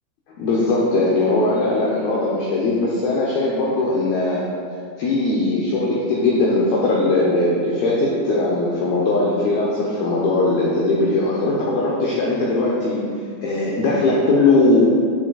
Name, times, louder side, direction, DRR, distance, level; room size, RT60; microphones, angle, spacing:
voice 1, 0.4-4.4 5.0-13.0 13.4-14.8, left 2 dB, 85° left, -5 dB, 2.2 m, -19 dB
9.8 x 7.4 x 2.3 m, 2.3 s
omnidirectional pair, 5.4 m